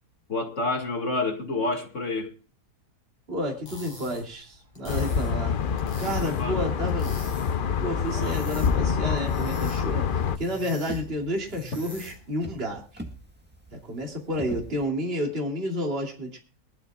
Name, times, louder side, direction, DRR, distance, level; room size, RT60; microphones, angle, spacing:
voice 1, 0.3-2.3 6.2-6.6 8.1-8.4, left 2 dB, 45° left, 3 dB, 2.3 m, -29 dB
voice 2, 3.3-5.6 6.0-7.1 7.8-13.0 13.7-16.4, equal, 35° right, 0 dB, 3.0 m, -30 dB
sound 1, 3.5-12.3, left 1 dB, 20° left, 8.1 m, -45 dB
sound 2, 4.9-10.4, left 6 dB, 75° left, 0.4 m, -26 dB
sound 3, 9.8-14.9, right 1 dB, 5° right, 1.5 m, -43 dB
22.5 x 12.0 x 2.3 m, 0.36 s
omnidirectional pair, 1.8 m